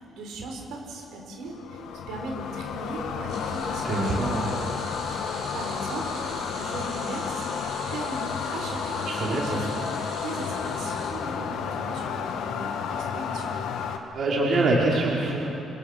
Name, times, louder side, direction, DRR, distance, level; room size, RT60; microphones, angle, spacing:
voice 1, 0.0-4.4 5.2-6.2 6.5-7.4 7.9-10.0 10.2-13.5, right 2 dB, 75° right, 1 dB, 5.1 m, -38 dB
sound 1, 1.5-14.0, left 7 dB, 80° left, 2.0 m, -32 dB
sound 2, 3.2-11.7 12.1-12.3 13.5-13.6, right 3 dB, 55° right, 7.4 m, -43 dB
voice 2, 3.8-4.5 9.0-9.6 14.1-15.5, right 2 dB, 40° right, -3 dB, 4.4 m, -24 dB
28.0 x 26.5 x 6.7 m, 2.8 s
cardioid pair, 175°, 0 cm